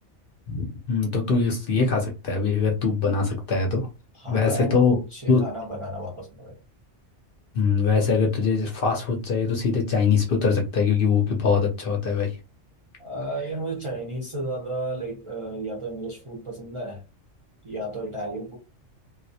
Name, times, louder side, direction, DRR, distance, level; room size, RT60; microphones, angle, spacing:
voice 1, 0.5-3.9 4.3-5.0 5.3-5.4 7.5-12.4, left 5 dB, 60° left, 0.7 m, -22 dB
voice 2, 4.2-6.6 13.0-17.0 17.6-18.6, right 1 dB, 35° right, 0.5 m, -33 dB
2.3 x 2.0 x 2.6 m
omnidirectional pair, 1.2 m